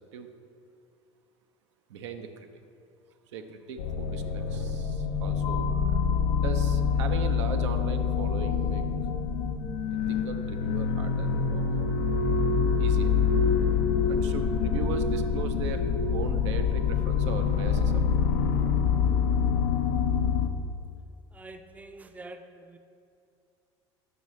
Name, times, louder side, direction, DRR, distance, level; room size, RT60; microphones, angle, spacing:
voice 1, 1.9-2.5 3.3-5.8 6.1-9.1 9.9-12.0 12.8-13.1 14.1-18.3, right 6 dB, 80° right, 6 dB, 0.5 m, -39 dB
sound 1, 3.8-20.5, left 6 dB, 75° left, 0.5 m, -26 dB
voice 2, 21.3-22.8, right 2 dB, 10° right, 7 dB, 0.4 m, -46 dB
7.5 x 5.3 x 3.1 m, 2.4 s
hypercardioid pair, 70°, 15 cm